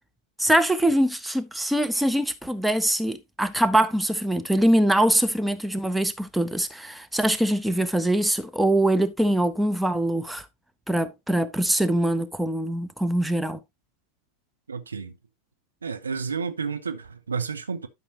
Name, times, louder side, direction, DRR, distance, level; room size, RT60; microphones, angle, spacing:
voice 1, 0.4-10.4 10.9-13.6, right 1 dB, 5° right, 0.8 m, -23 dB
voice 2, 14.7-15.1 15.8-17.9, right 5 dB, 75° right, 1.0 m, -31 dB
12.0 x 5.9 x 2.9 m
figure-of-eight pair, 90°, 0 cm